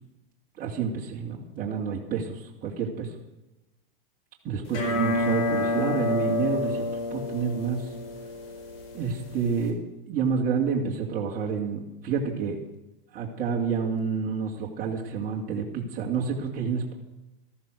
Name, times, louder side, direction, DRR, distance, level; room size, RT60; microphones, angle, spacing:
voice 1, 0.6-3.1 4.4-6.8 7.1-7.9 8.9-9.8 10.1-12.6 13.1-16.9, right 6 dB, 30° right, -2 dB, 2.9 m, -29 dB
sound 1, 4.7-9.7, left 2 dB, 75° left, 4.7 m, -29 dB
14.0 x 13.5 x 6.4 m, 0.97 s
hypercardioid pair, 135°, 29 cm